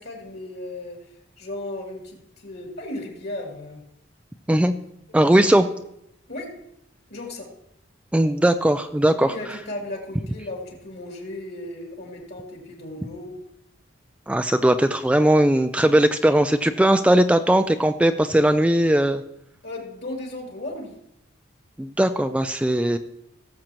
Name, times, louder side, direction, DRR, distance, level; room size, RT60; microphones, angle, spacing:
voice 1, 0.0-3.8 5.1-5.6 6.3-6.5 7.1-7.5 9.2-13.3 19.6-21.0, left 2 dB, 55° left, 0 dB, 2.9 m, -35 dB
voice 2, 5.1-5.7 8.1-9.3 14.3-19.2 21.8-23.0, right 1 dB, 5° right, 9 dB, 0.3 m, -19 dB
18.5 x 7.4 x 3.0 m, 0.78 s
head